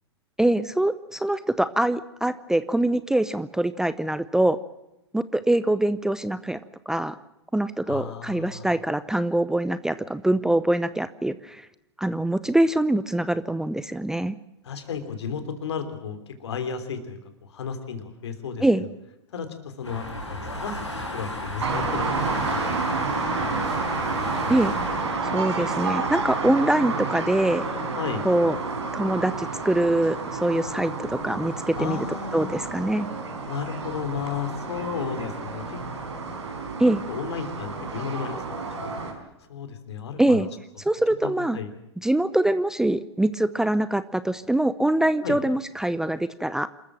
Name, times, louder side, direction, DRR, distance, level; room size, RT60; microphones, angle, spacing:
voice 1, 0.4-4.6 5.1-6.6 6.9-7.2 7.5-11.7 12.0-14.3 18.6-18.9 24.5-24.7 25.2-27.7 28.2-28.6 28.9-32.0 32.3-33.1 36.8-37.0 40.2-40.5 40.9-41.6 42.0-46.7, right 1 dB, 5° right, 15 dB, 0.6 m, -24 dB
voice 2, 7.9-8.7 14.6-18.9 19.3-20.8 21.1-23.1 28.0-28.3 31.8-32.5 33.5-35.9 37.1-38.6 39.5-40.5 41.2-41.7 45.2-45.4, left 6 dB, 70° left, 8 dB, 3.4 m, -33 dB
sound 1, 19.8-25.2, left 1 dB, 90° left, 7.0 m, -34 dB
sound 2, 21.6-39.1, right 4 dB, 80° right, 4.9 m, -30 dB
27.0 x 14.0 x 7.4 m, 0.92 s
figure-of-eight pair, 105°, 15 cm